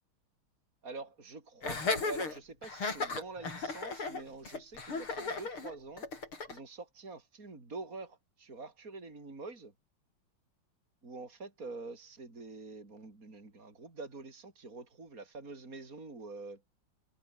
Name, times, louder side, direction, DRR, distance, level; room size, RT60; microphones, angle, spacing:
voice 1, 0.8-6.1 6.5-9.7 11.0-16.6, right 3 dB, 40° right, 4.8 m, -46 dB
Laughter, 1.6-6.6, left 4 dB, 80° left, 5.8 m, -36 dB
omnidirectional pair, 2.3 m